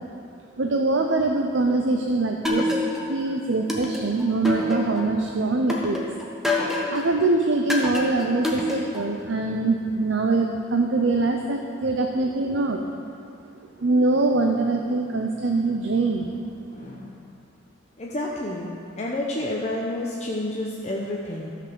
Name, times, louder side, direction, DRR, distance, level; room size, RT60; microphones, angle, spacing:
voice 1, 0.6-2.7 3.1-6.0 6.9-12.9 13.8-16.4, right 3 dB, 70° right, 3 dB, 0.7 m, -23 dB
sound 1, 2.4-3.2 3.7-5.1 5.7-7.1 7.7-9.1, left 1 dB, ahead, 1.0 m, -26 dB
voice 2, 16.7-17.3 18.0-18.7 19.0-21.5, left 1 dB, 35° left, -3 dB, 0.8 m, -30 dB
13.5 x 5.9 x 6.9 m, 2.4 s
head